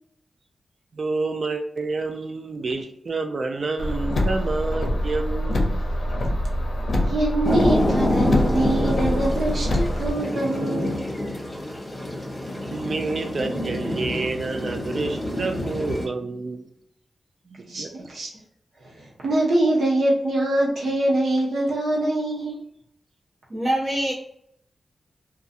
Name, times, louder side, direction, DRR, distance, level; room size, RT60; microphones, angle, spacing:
voice 1, 0.9-5.7 12.7-16.7 17.5-18.1, right 3 dB, 60° right, 6 dB, 0.3 m, -29 dB
Car, 3.8-10.1, equal, 65° left, 0.5 m, -25 dB
voice 2, 7.1-11.0 17.7-18.3 18.8-22.7, right 1 dB, 80° right, -3 dB, 0.9 m, -24 dB
sound 1, 7.4-16.1, left 1 dB, 20° left, 0.9 m, -27 dB
voice 3, 23.5-24.1, right 1 dB, 40° right, -6 dB, 1.2 m, -24 dB
2.4 x 2.2 x 2.7 m, 0.72 s
wide cardioid pair, 85°, 0 cm